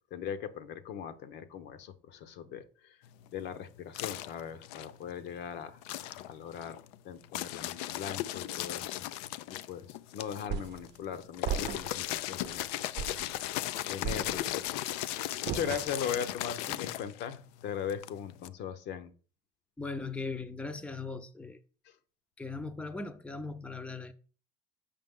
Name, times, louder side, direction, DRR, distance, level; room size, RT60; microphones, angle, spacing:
voice 1, 0.1-2.9 3.3-6.8 7.0-9.0 9.7-13.0 13.9-14.7 15.4-19.1 21.9-22.0, left 8 dB, 60° left, 0.8 m, -39 dB
sound 1, 3.0-5.4 5.8-18.5, left 14 dB, 80° left, 0.4 m, -37 dB
sound 2, 10.5-10.9 11.4-12.1 12.4-12.6 13.0-13.3 14.0-14.7 15.5-16.2, right 7 dB, 60° right, 0.7 m, -36 dB
voice 2, 19.8-21.6 22.4-24.1, left 3 dB, 5° left, 0.6 m, -39 dB
6.8 x 5.2 x 3.7 m
supercardioid pair, 90°, 20 cm